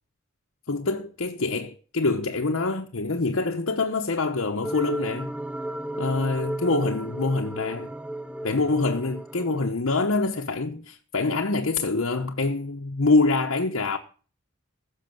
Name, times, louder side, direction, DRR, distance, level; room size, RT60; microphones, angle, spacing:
voice 1, 0.7-5.3 6.0-7.9 8.4-14.0, left 3 dB, 65° left, 1.0 m, -25 dB
sound 1, 4.6-9.7, right 1 dB, 5° right, 0.5 m, -34 dB
15.5 x 6.6 x 7.8 m
head